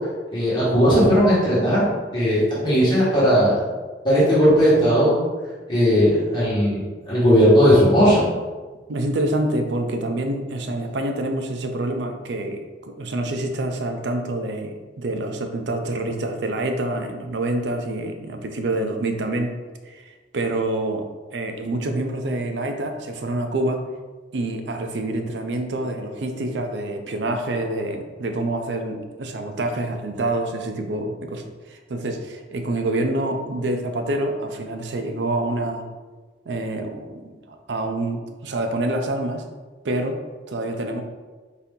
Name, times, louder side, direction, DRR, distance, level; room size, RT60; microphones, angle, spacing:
voice 1, 0.3-1.9 2.1-3.6 4.0-5.1 5.7-8.2, equal, 25° left, -9 dB, 1.4 m, -17 dB
voice 2, 8.9-19.5 19.9-21.1 21.3-23.8 24.3-35.8 36.5-39.5 39.8-40.2 40.5-41.0, right 2 dB, 75° right, 5 dB, 0.5 m, -27 dB
4.1 x 2.7 x 3.6 m, 1.3 s
head